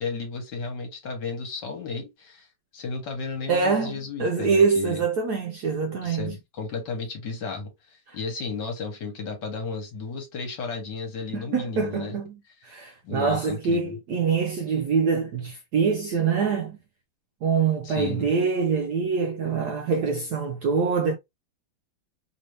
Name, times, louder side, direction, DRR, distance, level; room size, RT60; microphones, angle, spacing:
voice 1, 0.0-2.5 2.7-5.0 6.0-7.7 8.1-12.2 13.0-13.9 17.8-18.3, left 4 dB, 65° left, 1.7 m, -33 dB
voice 2, 3.5-6.3 8.1-8.2 11.3-16.8 17.4-21.2, right 5 dB, 75° right, 0.9 m, -25 dB
3.4 x 2.6 x 3.1 m
omnidirectional pair, 2.2 m